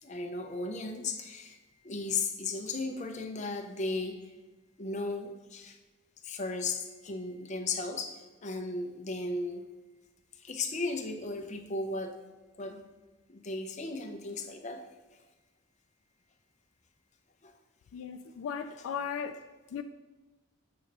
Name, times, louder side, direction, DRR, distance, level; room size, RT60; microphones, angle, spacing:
voice 1, 0.0-1.6 1.8-4.2 4.8-5.8 6.2-9.6 10.4-12.1 12.6-12.8 13.3-14.8 17.4-17.5, left 3 dB, 35° left, 4 dB, 0.6 m, -35 dB
voice 2, 17.9-19.4 19.7-19.8, left 7 dB, 75° left, 8 dB, 0.3 m, -36 dB
7.6 x 2.9 x 5.2 m, 1.2 s
head